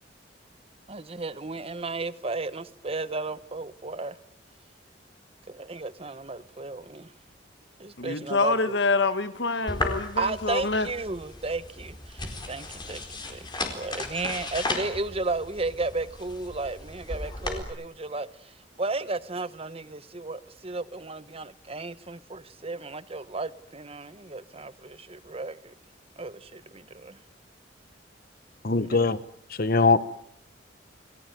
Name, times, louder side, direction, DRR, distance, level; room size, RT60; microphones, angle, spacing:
voice 1, 0.9-4.2 5.5-7.1 7.8-8.8 10.2-13.0 13.3-25.7 26.2-27.2 28.8-29.0, right 3 dB, 30° right, 1.1 m, -34 dB
voice 2, 8.0-10.9, left 3 dB, 65° left, 1.6 m, -26 dB
sound 1, 9.7-17.6, left 2 dB, 25° left, 4.3 m, -35 dB
voice 3, 28.6-29.2 29.5-30.0, left 3 dB, 50° left, 1.1 m, -21 dB
29.5 x 20.0 x 9.3 m
head